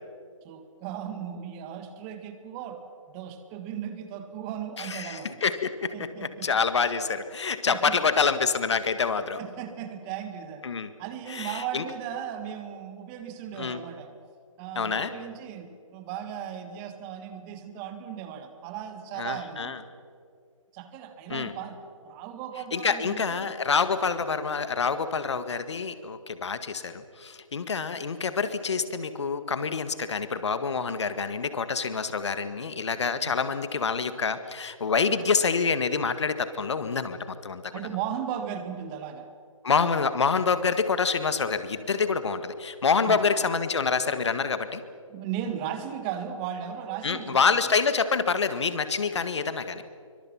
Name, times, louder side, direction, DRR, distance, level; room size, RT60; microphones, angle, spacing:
voice 1, 0.4-2.8 3.1-5.4 5.9-6.5 7.7-8.0 9.4-10.7 11.0-14.1 14.6-19.8 20.7-23.5 33.2-33.3 37.7-39.3 43.0-43.3 45.1-47.7 49.1-49.3, right 9 dB, 20° right, 8 dB, 1.7 m, -36 dB
voice 2, 4.8-9.4 10.6-10.9 11.3-11.8 13.6-13.8 14.8-15.1 19.2-19.8 21.3-21.5 22.7-37.7 39.6-44.8 47.0-49.8, left 5 dB, 55° left, 11 dB, 1.7 m, -27 dB
26.5 x 24.5 x 5.9 m, 2.2 s
figure-of-eight pair, 145°, 17 cm